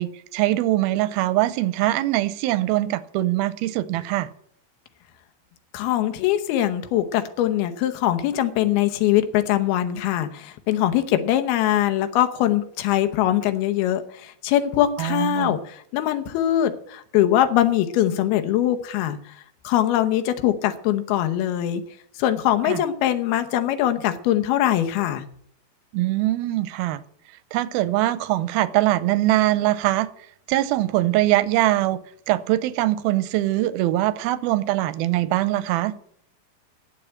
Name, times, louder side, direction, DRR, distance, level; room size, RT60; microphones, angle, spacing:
voice 1, 0.0-4.3 15.0-15.6 22.7-22.8 25.9-27.0 27.5-30.1 30.5-32.0 32.3-35.9, right 15 dB, 85° right, 2.5 m, -22 dB
voice 2, 5.7-19.4 19.6-21.8 22.2-25.3, left 12 dB, 90° left, 2.9 m, -22 dB
9.9 x 7.8 x 8.6 m
omnidirectional pair, 4.3 m